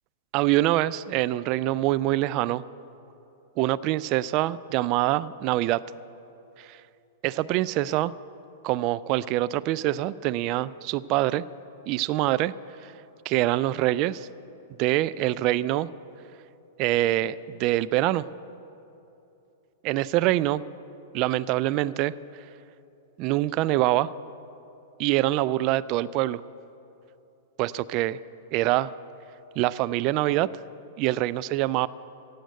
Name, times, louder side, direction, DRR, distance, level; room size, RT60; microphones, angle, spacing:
voice 1, 0.3-2.6 3.6-5.8 6.6-6.8 7.2-8.1 8.6-11.4 11.9-12.5 12.8-12.9 13.3-14.3 14.8-15.9 16.8-18.3 19.8-20.6 21.1-22.1 23.2-24.1 25.0-26.4 27.6-28.2 28.5-28.9 29.6-30.5 31.0-31.9, right 16 dB, 40° right, 16 dB, 0.3 m, -25 dB
16.5 x 7.9 x 8.1 m, 2.8 s
figure-of-eight pair, 100°, 0 cm